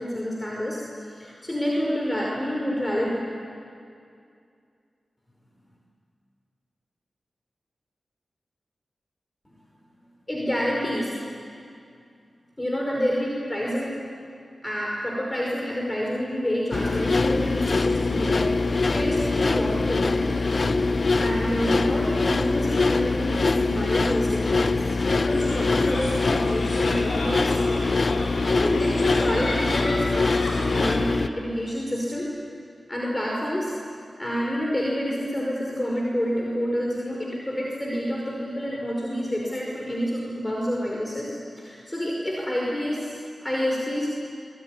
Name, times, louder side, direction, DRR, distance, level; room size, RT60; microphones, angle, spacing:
voice 1, 0.0-3.1 10.3-11.1 12.6-14.0 14.6-20.7 21.2-27.8 28.2-32.3 32.9-33.7 34.2-44.1, equal, 25° left, -2 dB, 5.2 m, -28 dB
sound 1, 16.7-31.3, left 3 dB, 60° left, 1.0 m, -23 dB
sound 2, 25.2-31.0, left 1 dB, 80° left, 6.9 m, -33 dB
25.0 x 21.5 x 10.0 m, 2.4 s
cardioid pair, 45°, 0 cm